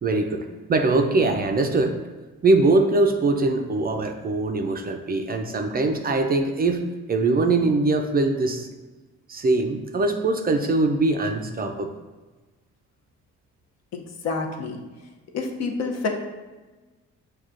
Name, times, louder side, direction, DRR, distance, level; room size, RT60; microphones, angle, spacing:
voice 1, 0.0-2.0 2.4-8.7 9.3-11.9, right 2 dB, 30° right, 4 dB, 0.4 m, -22 dB
voice 2, 13.9-14.8 15.3-16.1, left 4 dB, 60° left, 3 dB, 0.6 m, -28 dB
6.1 x 2.3 x 2.5 m, 1.2 s
cardioid pair, 90°, 30 cm